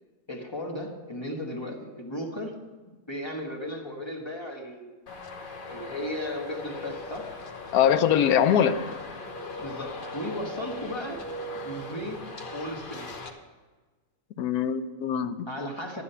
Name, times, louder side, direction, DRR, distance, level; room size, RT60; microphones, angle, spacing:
voice 1, 0.3-2.5 3.1-4.9 5.7-7.3 9.6-11.2 11.6-13.1 15.5-16.0, left 1 dB, 20° left, 0 dB, 1.5 m, -35 dB
Traffic noise roadway noise, 5.1-13.3, left 2 dB, 40° left, 1.0 m, -39 dB
voice 2, 7.7-8.8 14.4-15.5, left 9 dB, 80° left, 12 dB, 1.2 m, -22 dB
12.0 x 9.7 x 5.6 m, 1.3 s
omnidirectional pair, 1.6 m